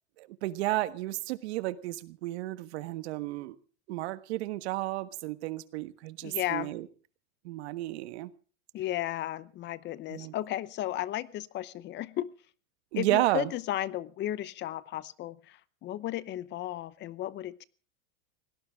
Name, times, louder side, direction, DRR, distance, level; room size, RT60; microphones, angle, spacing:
voice 1, 0.2-3.6 3.9-6.9 7.4-8.3 10.1-10.3 12.9-13.5, right 17 dB, 65° right, 1.5 m, -32 dB
voice 2, 6.2-6.7 8.7-12.3 13.0-17.6, left 13 dB, 30° left, 0.8 m, -34 dB
21.5 x 18.0 x 3.6 m
supercardioid pair, 140°, 35 cm